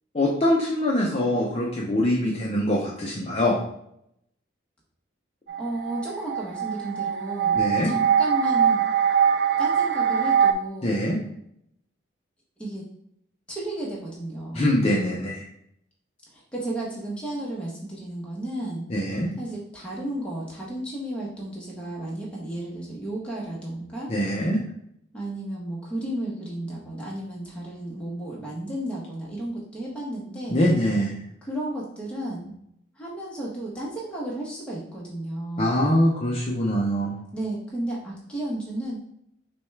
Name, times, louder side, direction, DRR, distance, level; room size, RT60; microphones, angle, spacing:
voice 1, 0.1-3.6 7.5-7.9 10.8-11.2 14.5-15.5 18.9-19.3 24.1-24.6 30.5-31.2 35.6-37.2, left 1 dB, 30° left, -3 dB, 0.5 m, -23 dB
sound 1, 5.5-10.5, right 7 dB, 55° right, 0.3 m, -22 dB
voice 2, 5.6-8.8 9.6-11.0 12.6-12.8 13.5-14.7 16.3-18.9 19.4-24.1 25.1-30.6 31.4-32.5 33.0-35.8 37.3-39.0, right 1 dB, 5° left, -5 dB, 1.0 m, -33 dB
6.0 x 2.3 x 3.2 m, 0.74 s
head